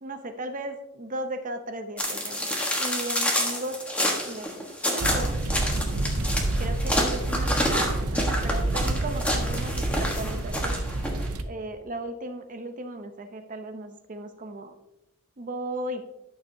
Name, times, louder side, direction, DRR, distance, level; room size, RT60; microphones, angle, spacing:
voice 1, 0.0-2.5 2.8-3.8 4.2-5.4 6.6-10.8 11.4-14.7 15.4-16.0, right 1 dB, 40° right, 7 dB, 0.7 m, -36 dB
sound 1, 2.0-11.3, left 1 dB, 5° left, 1.2 m, -28 dB
sound 2, 5.0-11.4, right 2 dB, 90° right, 0.7 m, -28 dB
11.5 x 6.8 x 2.7 m, 0.92 s
head